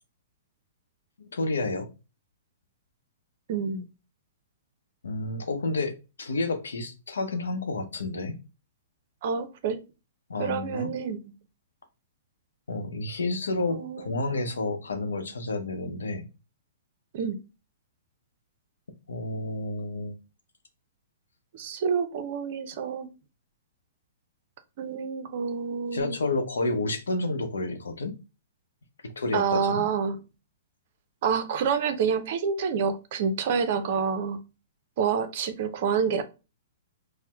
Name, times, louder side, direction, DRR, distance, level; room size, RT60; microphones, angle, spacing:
voice 1, 1.3-1.9 5.0-8.4 10.3-10.9 12.7-16.2 19.1-20.1 25.9-28.1 29.2-29.8, left 2 dB, 85° left, 7 dB, 0.6 m, -30 dB
voice 2, 3.5-3.8 9.2-9.8 10.4-11.2 13.7-14.4 17.1-17.4 21.5-23.1 24.8-26.2 29.3-30.2 31.2-34.4 35.0-36.2, right 6 dB, 55° right, 10 dB, 0.5 m, -28 dB
4.2 x 2.1 x 2.2 m, 0.29 s
hypercardioid pair, 130°, 0 cm